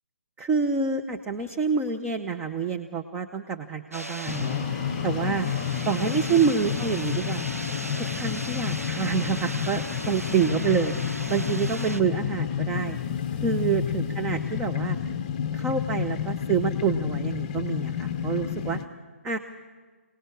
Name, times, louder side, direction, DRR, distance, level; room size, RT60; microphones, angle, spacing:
voice 1, 0.4-4.7 5.0-5.5 5.9-7.5 8.0-10.9 11.3-13.0 13.4-15.0 15.5-18.8 19.2-19.4, right 6 dB, 10° right, 5 dB, 0.7 m, -27 dB
sound 1, 3.9-12.0, right 1 dB, 85° right, 1.2 m, -37 dB
sound 2, 4.3-18.9, left 8 dB, 30° left, 0.8 m, -30 dB
sound 3, 8.8-10.7 12.7-14.6, left 6 dB, 5° left, 2.1 m, -53 dB
29.0 x 18.5 x 7.2 m, 1.5 s
figure-of-eight pair, 140°, 8 cm